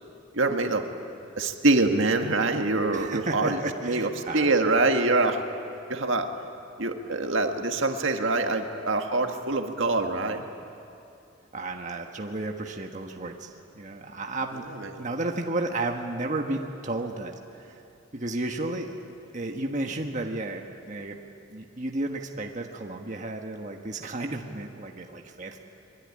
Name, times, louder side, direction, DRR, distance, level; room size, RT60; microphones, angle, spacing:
voice 1, 0.3-0.9 1.4-5.4 5.9-6.3 6.8-10.4 14.8-15.1, right 2 dB, 70° right, 4 dB, 1.8 m, -25 dB
voice 2, 2.9-4.5 11.5-14.6 15.0-17.8 18.1-18.9 19.3-21.2 21.5-25.6, right 2 dB, 40° right, 2 dB, 1.4 m, -33 dB
24.5 x 22.5 x 9.8 m, 2.7 s
head